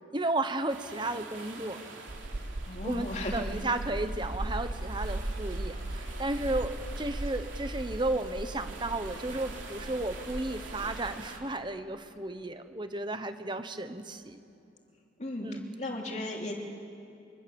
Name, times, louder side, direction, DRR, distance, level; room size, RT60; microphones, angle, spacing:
voice 1, 0.1-1.8 2.8-14.4 15.4-15.6, right 2 dB, 25° right, 9 dB, 1.1 m, -33 dB
sound 1, 0.7-11.4, right 3 dB, 90° right, 3.4 m, -46 dB
sound 2, 2.1-11.1, right 1 dB, 55° right, 0.9 m, -38 dB
voice 2, 2.7-3.4 6.0-6.1 15.2-15.5 15.8-16.5, left 1 dB, 40° left, 1 dB, 2.8 m, -35 dB
24.5 x 23.5 x 7.1 m, 2.7 s
head